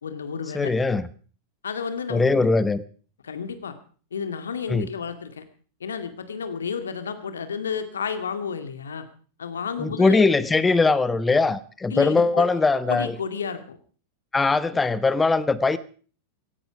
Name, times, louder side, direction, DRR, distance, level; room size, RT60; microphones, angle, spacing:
voice 1, 0.0-0.7 1.6-2.5 3.2-3.8 4.1-5.5 5.8-9.0 9.4-10.3 11.9-12.5 12.9-13.8, left 6 dB, 70° left, 9 dB, 2.1 m, -31 dB
voice 2, 0.5-1.1 2.1-2.8 4.7-4.9 9.8-13.1 14.3-15.8, left 3 dB, 10° left, 16 dB, 0.9 m, -21 dB
17.0 x 16.5 x 4.9 m, 0.41 s
figure-of-eight pair, 90°, 0 cm